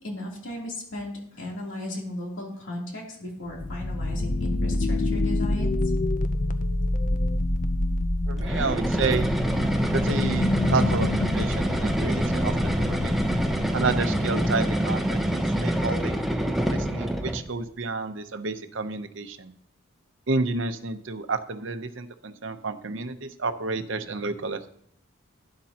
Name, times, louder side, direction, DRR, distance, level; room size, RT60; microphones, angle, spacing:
voice 1, 0.0-5.7, left 1 dB, 60° left, -2 dB, 3.1 m, -35 dB
sound 1, 3.5-14.1, left 2 dB, 40° left, 0.5 m, -27 dB
voice 2, 8.3-9.3 9.9-13.1 13.7-16.2 16.6-19.5 20.3-24.7, right 3 dB, 60° right, 9 dB, 0.8 m, -30 dB
sound 2, 8.4-17.5, equal, ahead, 0.8 m, -26 dB
11.5 x 10.5 x 2.9 m, 0.69 s
head